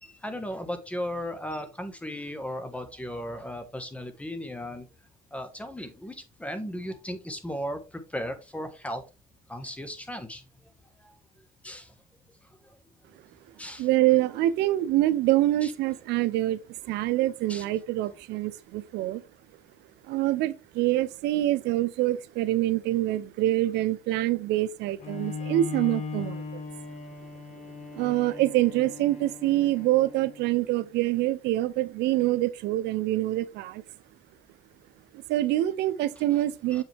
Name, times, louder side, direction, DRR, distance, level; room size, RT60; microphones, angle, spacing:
voice 1, 0.0-4.9 5.3-9.0 9.5-10.4 11.0-11.1 11.6-11.9 12.6-12.8 13.6-13.9 15.6-15.7 17.5-17.6 36.7-36.8, equal, 10° left, 1.4 m, -36 dB
voice 2, 13.8-16.6 16.8-19.2 20.1-26.6 27.9-33.8 35.1-36.8, right 15 dB, 85° right, 0.6 m, -25 dB
Bowed string instrument, 25.0-30.7, left 4 dB, 45° left, 1.4 m, -38 dB
7.2 x 5.4 x 3.3 m
cardioid pair, 110°, 17 cm